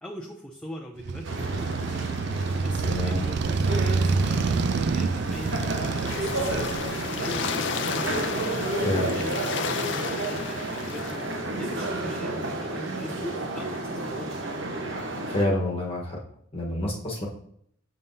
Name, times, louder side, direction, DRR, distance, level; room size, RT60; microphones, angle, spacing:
voice 1, 0.0-2.2 2.6-8.2 9.0-11.2 11.6-14.4, equal, 5° left, -1 dB, 0.5 m, -40 dB
Motorcycle, 1.0-7.7, right 4 dB, 60° right, 0.4 m, -28 dB
sound 1, 1.2-15.5, right 2 dB, 75° right, 1.0 m, -31 dB
voice 2, 2.8-3.2 8.8-9.2 15.3-16.2 16.5-17.3, left 1 dB, 30° left, -3 dB, 1.1 m, -28 dB
sound 2, 5.3-11.4, left 6 dB, 65° left, 0.5 m, -33 dB
6.8 x 5.5 x 2.7 m, 0.67 s
head